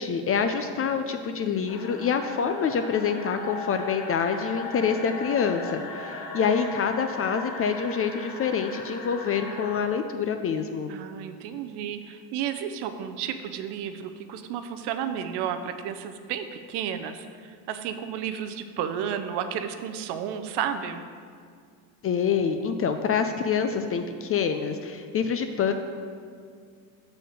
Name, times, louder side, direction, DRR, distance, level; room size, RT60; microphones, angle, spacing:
voice 1, 0.0-10.9 22.0-25.7, left 6 dB, 35° left, 7 dB, 0.4 m, -26 dB
sound 1, 1.7-9.8, left 3 dB, 55° left, 1.4 m, -38 dB
voice 2, 10.9-21.0, right 8 dB, 70° right, 8 dB, 0.6 m, -32 dB
6.6 x 4.2 x 6.4 m, 2.1 s
supercardioid pair, 105°, 43 cm